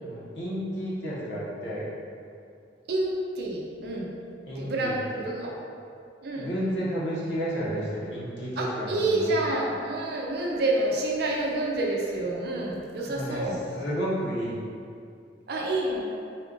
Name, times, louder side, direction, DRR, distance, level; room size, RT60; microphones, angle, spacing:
voice 1, 0.0-1.9 4.5-5.3 6.3-9.4 13.1-13.5 13.7-14.6, equal, 65° left, -7 dB, 1.1 m, -31 dB
voice 2, 2.9-4.1 4.6-5.5 6.2-6.5 8.6-13.6 15.5-16.0, right 2 dB, 60° right, -2 dB, 0.5 m, -28 dB
4.3 x 2.4 x 3.8 m, 2.4 s
head